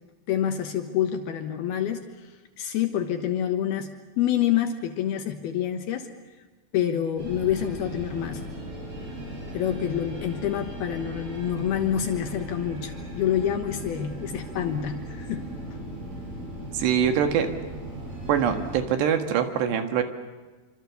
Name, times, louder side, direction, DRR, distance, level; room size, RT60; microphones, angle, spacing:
voice 1, 0.3-3.9 4.2-6.1 6.7-8.5 9.5-15.5, left 10 dB, 70° left, 6 dB, 2.8 m, -27 dB
sound 1, 7.2-18.8, right 1 dB, 50° right, 8.5 m, -38 dB
voice 2, 16.7-17.5 18.3-20.0, right 8 dB, 70° right, 6 dB, 3.7 m, -23 dB
27.0 x 26.0 x 7.0 m, 1.3 s
omnidirectional pair, 5.3 m